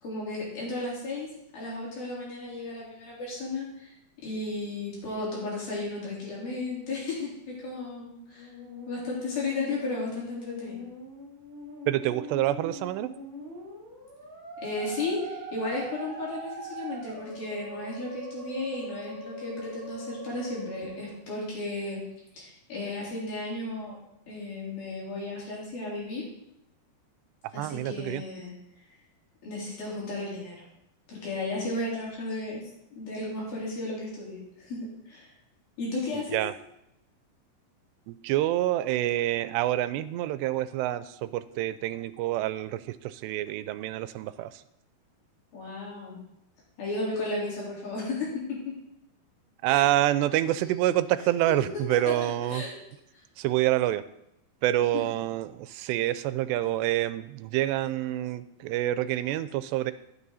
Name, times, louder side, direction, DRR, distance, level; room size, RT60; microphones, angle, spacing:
voice 1, 0.0-1.3 1.5-3.9 4.2-8.5 8.9-10.8 14.6-22.0 22.3-24.0 24.3-26.2 27.5-28.5 29.4-30.6 31.1-32.6 32.9-35.3 35.8-36.4 45.5-46.2 46.8-48.3 48.7-48.8 49.7-49.8 52.4-52.7 54.9-55.0, left 2 dB, 60° left, -6 dB, 5.8 m, -34 dB
Musical instrument, 8.2-21.2, right 1 dB, 15° right, 5.5 m, -42 dB
voice 2, 11.9-13.1 27.6-28.2 36.1-36.5 38.1-44.6 49.6-52.7 53.4-54.0 54.6-59.9, right 14 dB, 90° right, 14 dB, 2.7 m, -27 dB
13.0 x 9.2 x 4.1 m, 0.82 s
omnidirectional pair, 4.8 m